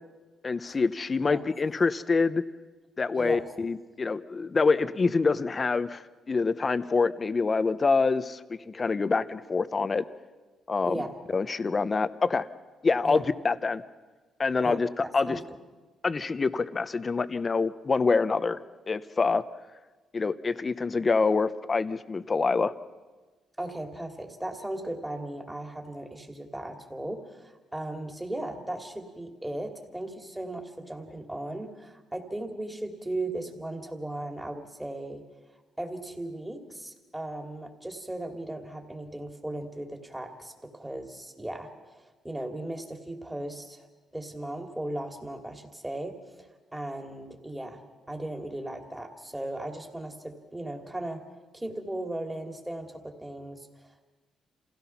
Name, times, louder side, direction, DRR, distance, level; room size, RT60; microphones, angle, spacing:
voice 1, 0.4-2.4 3.0-10.0 10.7-11.0 11.3-12.5 12.8-13.8 14.4-14.9 15.1-15.4 16.0-18.6 18.9-19.4 20.1-22.7, left 4 dB, 30° left, 13 dB, 0.8 m, -26 dB
voice 2, 10.8-11.2 13.0-13.2 14.6-15.4 23.6-35.2 35.8-43.9 44.1-51.2 51.5-54.1, right 1 dB, 10° right, 3 dB, 2.5 m, -37 dB
27.5 x 16.5 x 5.8 m, 1.3 s
cardioid pair, 90°, 0 cm